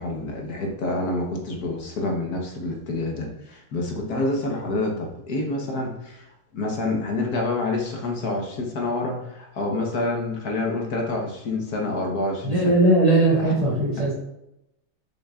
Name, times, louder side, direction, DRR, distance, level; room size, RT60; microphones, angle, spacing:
voice 1, 0.0-6.3 6.5-12.6 13.4-13.5, left 2 dB, 55° left, 0 dB, 1.4 m, -27 dB
voice 2, 12.5-14.1, right 2 dB, 15° right, -11 dB, 2.4 m, -19 dB
6.7 x 6.6 x 2.4 m, 0.86 s
omnidirectional pair, 2.3 m